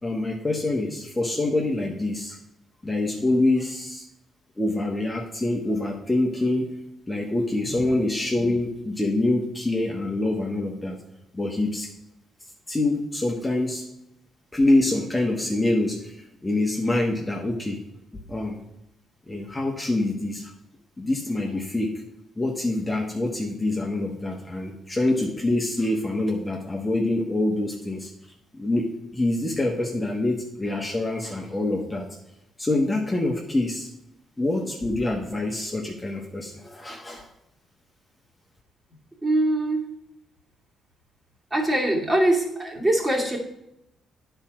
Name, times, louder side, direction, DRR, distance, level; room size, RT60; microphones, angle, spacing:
voice 1, 0.0-2.4 2.8-4.0 4.6-6.8 7.1-11.0 11.3-11.9 12.7-13.9 14.5-17.8 18.3-18.6 19.3-20.5 21.0-22.0 22.4-28.1 28.5-32.2 32.6-33.9 34.4-37.3, left 2 dB, 15° left, 0 dB, 1.3 m, -25 dB
voice 2, 39.2-39.8 41.5-43.4, right 1 dB, 20° right, 0 dB, 2.4 m, -23 dB
9.5 x 4.5 x 6.1 m, 0.84 s
cardioid pair, 90°, 0 cm